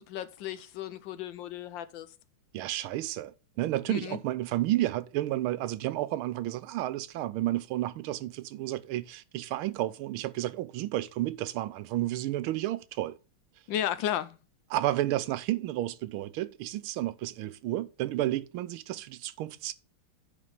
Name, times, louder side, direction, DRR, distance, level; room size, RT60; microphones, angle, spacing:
voice 1, 0.0-2.1 3.9-4.2 13.7-14.4, left 11 dB, 75° left, 1.2 m, -34 dB
voice 2, 2.5-13.2 14.7-19.7, right 15 dB, 85° right, 1.5 m, -31 dB
10.0 x 4.1 x 5.4 m
omnidirectional pair, 2.3 m